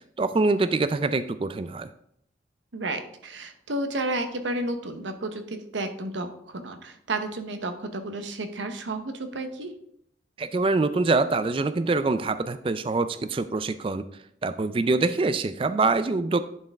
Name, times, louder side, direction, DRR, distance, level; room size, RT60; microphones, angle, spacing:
voice 1, 0.2-1.9 10.4-14.0 14.4-16.4, right 3 dB, 30° right, 12 dB, 0.3 m, -24 dB
voice 2, 2.7-9.7, right 2 dB, 85° right, 7 dB, 0.9 m, -32 dB
10.5 x 4.5 x 3.5 m, 0.72 s
head